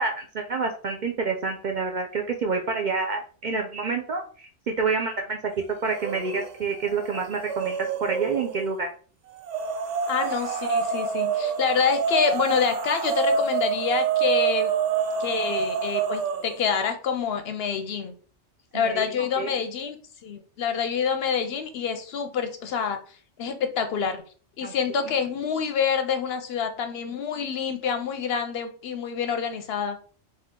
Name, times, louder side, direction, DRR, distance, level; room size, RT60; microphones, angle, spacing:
voice 1, 0.0-5.5 5.8-8.9 18.7-19.1 19.4-19.5 24.6-24.7, right 4 dB, 60° right, 3 dB, 0.5 m, -28 dB
sound 1, 5.9-6.5 6.8-8.7 9.4-16.6, right 6 dB, 80° right, 1.0 m, -27 dB
voice 2, 10.1-14.7 15.2-18.1 18.7-20.0 20.2-23.0 23.4-24.2 24.6-30.0, left 6 dB, 65° left, 7 dB, 0.7 m, -27 dB
3.5 x 2.8 x 3.6 m, 0.42 s
omnidirectional pair, 1.2 m